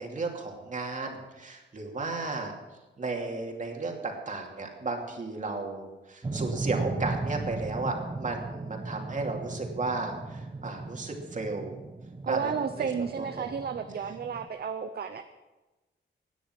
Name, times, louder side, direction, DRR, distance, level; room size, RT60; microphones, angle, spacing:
voice 1, 0.0-2.5 3.0-11.8 12.3-12.9 13.2-13.5, right 3 dB, 40° right, 2 dB, 2.6 m, -34 dB
sound 1, 6.2-14.5, right 3 dB, 25° right, 1.1 m, -36 dB
voice 2, 12.2-15.2, right 6 dB, 55° right, 8 dB, 0.8 m, -32 dB
17.5 x 10.0 x 6.0 m, 1.1 s
wide cardioid pair, 130°, 19 cm